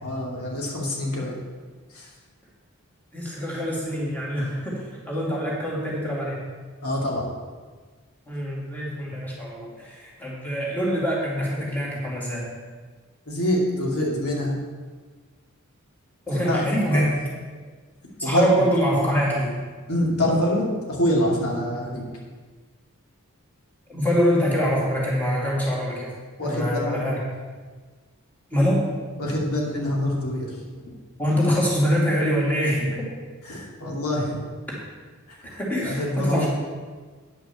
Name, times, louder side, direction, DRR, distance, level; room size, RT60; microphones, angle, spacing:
voice 1, 0.0-1.3 1.9-2.1 6.8-7.3 13.3-14.6 16.3-17.0 18.2-18.5 19.9-22.0 26.4-27.1 29.2-30.9 33.5-34.4 35.3-36.5, left 1 dB, 80° left, -3 dB, 2.6 m, -26 dB
voice 2, 3.1-6.4 8.3-12.5 16.3-17.2 18.2-19.6 23.9-26.1 26.4-27.2 28.5-28.9 31.2-33.1 35.4-36.5, equal, 10° left, -6 dB, 2.5 m, -24 dB
9.7 x 5.9 x 7.0 m, 1.4 s
head